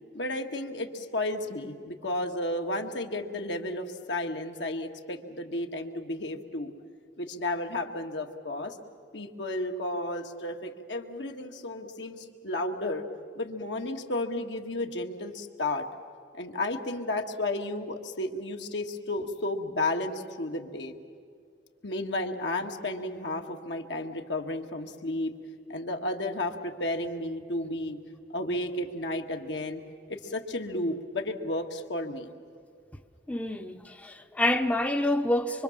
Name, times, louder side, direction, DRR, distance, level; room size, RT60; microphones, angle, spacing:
voice 1, 0.1-6.7 7.2-8.8 9.1-13.1 13.4-15.9 16.3-20.9 21.8-25.4 25.7-28.0 28.3-29.8 30.1-32.3, left 1 dB, 80° left, 1.7 m, -32 dB
voice 2, 33.3-35.6, left 1 dB, 10° left, 0.6 m, -27 dB
25.0 x 24.5 x 7.3 m
head